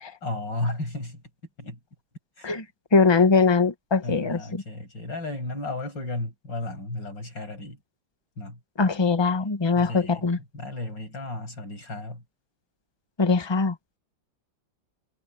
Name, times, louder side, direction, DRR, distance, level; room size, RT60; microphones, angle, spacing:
voice 1, 0.2-1.2 1.6-1.8 2.4-2.7 4.0-7.8 8.4-8.6 9.8-12.2, left 2 dB, 70° left, 7.7 m, -34 dB
voice 2, 2.9-4.6 8.8-10.4 13.2-13.7, left 4 dB, 15° left, 1.0 m, -21 dB
omnidirectional pair, 2.1 m